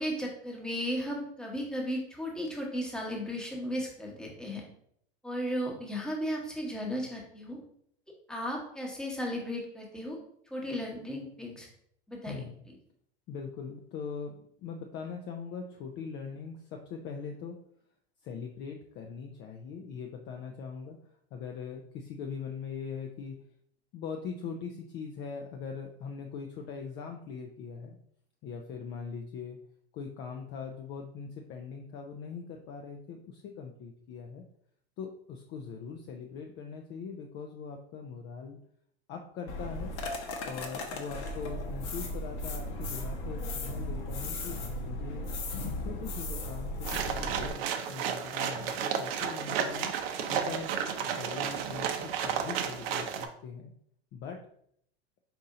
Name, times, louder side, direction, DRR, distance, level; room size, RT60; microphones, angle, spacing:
voice 1, 0.0-4.6 5.2-7.6 8.3-10.2 10.5-11.7 12.1-12.4, equal, ahead, -2 dB, 1.0 m, -35 dB
voice 2, 13.3-17.6 18.2-21.0 21.3-23.4 23.9-28.0 28.4-29.6 29.9-34.4 35.0-38.6 39.1-39.9 40.4-45.3 45.8-49.9 50.3-50.8 51.0-53.7 54.1-54.4, left 6 dB, 35° left, 3 dB, 0.4 m, -41 dB
sound 1, 39.5-47.5, left 1 dB, 50° left, 0.8 m, -36 dB
sound 2, 46.8-53.3, right 8 dB, 65° right, 0.6 m, -32 dB
4.2 x 2.7 x 3.6 m, 0.69 s
hypercardioid pair, 110°, 32 cm